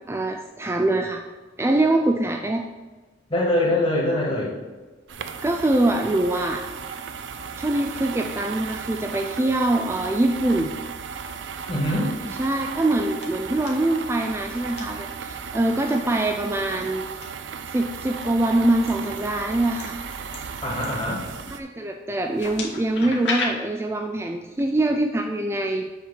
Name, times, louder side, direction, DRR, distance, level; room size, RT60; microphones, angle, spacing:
voice 1, 0.1-1.2 1.6-2.6 5.4-6.6 7.6-10.7 12.4-17.0 17.7-20.0 21.5-25.9, right 1 dB, 15° right, 3 dB, 0.3 m, -23 dB
voice 2, 3.3-4.5 11.7-12.1 20.6-21.3, left 1 dB, 30° left, -3 dB, 2.1 m, -23 dB
sound 1, 5.1-21.6, right 6 dB, 85° right, 0.5 m, -35 dB
sound 2, 12.6-12.8 13.2-13.7 14.5-14.8 15.7-16.0 16.8-17.3 17.8-18.2 18.8-21.5 22.2-23.5, left 4 dB, 75° left, 1.5 m, -35 dB
7.7 x 3.3 x 6.3 m, 1.3 s
head